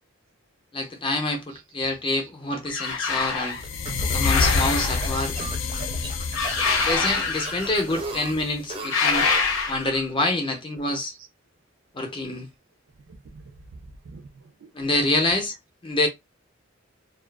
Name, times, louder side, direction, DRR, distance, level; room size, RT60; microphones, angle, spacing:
voice 1, 0.7-3.6 4.1-5.4 6.8-9.3 9.7-11.1 11.9-12.5 14.7-15.6 15.8-16.1, left 2 dB, 25° left, 0.6 m, -26 dB
voice 2, 2.2-2.6 3.5-3.6 4.8-4.9 5.1-5.3 7.2-7.5 8.0-8.1 8.5-8.6 10.4-10.6 11.1-11.3 13.1-14.7 15.2-15.3, right 5 dB, 75° right, 0.5 m, -47 dB
sound 1, 2.7-3.6 4.2-5.3 6.3-7.9 8.8-10.1, left 4 dB, 90° left, 0.8 m, -25 dB
sound 2, 3.5-8.6, left 4 dB, 70° left, 0.4 m, -28 dB
sound 3, 3.6-9.5, right 3 dB, 25° right, 0.5 m, -37 dB
2.3 x 2.3 x 2.2 m
head